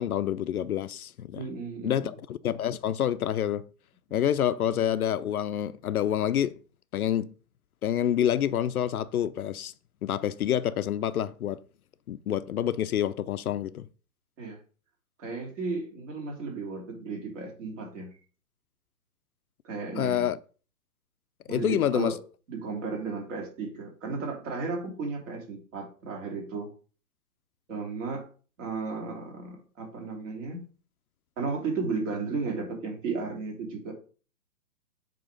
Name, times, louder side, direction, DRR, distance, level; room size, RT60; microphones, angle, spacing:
voice 1, 0.0-1.4 1.8-3.6 4.1-6.5 6.9-7.3 7.8-9.7 10.0-11.6 12.1-13.9 20.0-20.4 21.5-22.1, left 10 dB, 65° left, 0.6 m, -27 dB
voice 2, 1.3-2.1 14.4-14.6 15.2-18.2 19.6-20.3 21.5-22.2 22.5-26.7 27.7-28.2 28.6-30.7 31.4-33.9, right 4 dB, 50° right, 2.9 m, -34 dB
7.6 x 3.0 x 5.1 m
hypercardioid pair, 145°, 48 cm